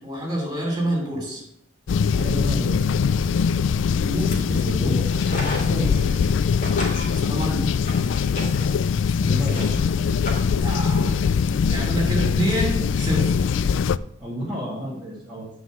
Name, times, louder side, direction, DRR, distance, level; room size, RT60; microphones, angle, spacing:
voice 1, 0.0-1.4 7.1-7.8 10.6-11.1 11.7-13.5, right 1 dB, 20° right, -1 dB, 3.0 m, -27 dB
sound 1, 1.9-14.0, left 6 dB, 80° left, 0.3 m, -22 dB
voice 2, 2.2-3.0 4.0-5.3 5.6-6.1 9.2-9.9 14.2-15.5, right 1 dB, 5° right, -9 dB, 2.3 m, -30 dB
sound 2, 4.2-4.6 4.9-6.4 6.6-11.2, left 1 dB, 45° left, 2.3 m, -35 dB
9.5 x 4.7 x 7.2 m, 0.73 s
head